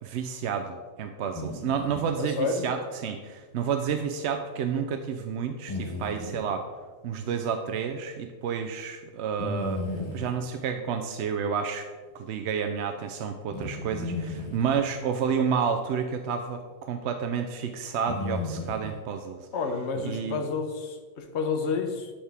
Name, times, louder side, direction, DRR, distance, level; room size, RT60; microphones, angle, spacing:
voice 1, 0.0-6.6 7.0-9.8 10.1-11.9 12.1-19.5 20.0-20.4, right 7 dB, 70° right, 6 dB, 0.8 m, -30 dB
sound 1, 1.3-2.2 5.7-6.5 9.4-10.4 13.5-14.8 16.7-16.8 18.1-19.0 19.9-20.0, left 2 dB, 30° left, 0.7 m, -34 dB
voice 2, 2.2-2.7 19.5-22.1, left 4 dB, 65° left, 5 dB, 1.1 m, -30 dB
11.0 x 4.3 x 3.5 m, 1.5 s
omnidirectional pair, 1.3 m